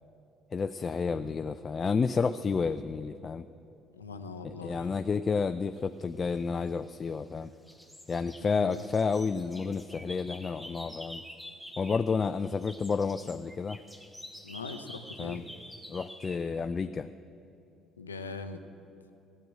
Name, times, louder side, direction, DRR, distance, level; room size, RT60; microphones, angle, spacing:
voice 1, 0.5-3.5 4.4-7.5 8.1-11.2 11.8-13.8 15.2-15.4 15.9-17.1, left 5 dB, 35° left, 10 dB, 0.4 m, -30 dB
voice 2, 3.9-4.9 8.4-8.8 14.4-15.5 18.0-18.6, left 4 dB, 85° left, 8 dB, 0.6 m, -41 dB
sound 1, 6.5-7.3 7.7-12.2 12.4-16.4, equal, ahead, 1.5 m, -47 dB
16.0 x 7.7 x 8.7 m, 2.8 s
figure-of-eight pair, 50°, 0 cm